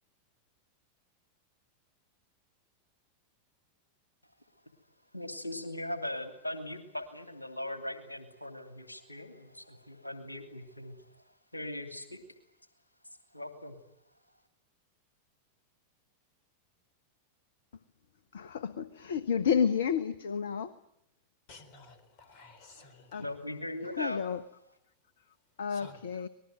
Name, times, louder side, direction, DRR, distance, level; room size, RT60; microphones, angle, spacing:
voice 1, 5.1-11.2 11.5-12.2 13.3-13.8 22.8-22.9 23.2-24.2, left 1 dB, 85° left, 8 dB, 2.7 m, -39 dB
voice 2, 18.3-20.7 23.1-23.2 24.0-24.4 25.6-26.3, left 7 dB, 65° left, 15 dB, 1.1 m, -30 dB
voice 3, 21.5-23.2 25.7-26.0, left 3 dB, 40° left, 11 dB, 4.3 m, -53 dB
25.5 x 20.5 x 9.2 m, 0.78 s
figure-of-eight pair, 90°, 0 cm